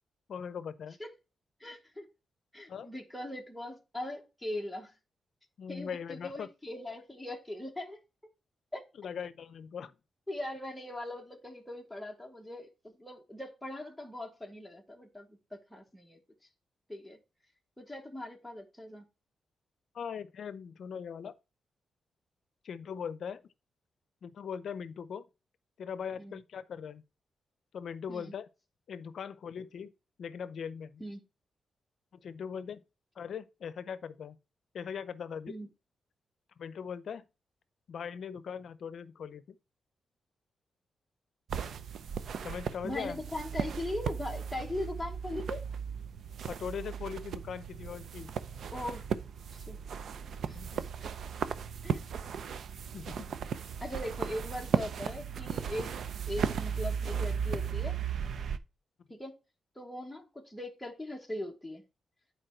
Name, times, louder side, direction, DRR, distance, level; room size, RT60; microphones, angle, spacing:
voice 1, 0.3-1.0 2.7-2.9 5.6-6.5 9.0-9.9 19.9-21.3 22.6-23.4 24.2-25.3 25.8-27.0 27.7-28.5 28.9-29.9 30.2-31.0 32.2-32.8 33.2-34.4 34.7-35.7 36.6-37.2 37.9-39.6 42.4-43.2 46.4-48.3 50.5-50.8 52.9-53.4, left 7 dB, 60° left, 0.6 m, -40 dB
voice 2, 1.6-2.1 2.5-4.9 5.7-8.0 8.7-8.8 10.3-16.2 16.9-17.2 17.8-19.0 26.2-26.4 28.1-28.3 31.0-31.2 35.5-35.7 42.8-45.6 48.7-49.1 49.5-49.8 50.5-51.1 51.8-52.0 53.8-55.9 56.3-58.0 59.1-59.4 59.8-61.8, left 1 dB, 5° left, 1.0 m, -40 dB
sound 1, 41.5-58.6, right 7 dB, 65° right, 0.5 m, -36 dB
9.2 x 4.6 x 4.3 m
wide cardioid pair, 155°, 0 cm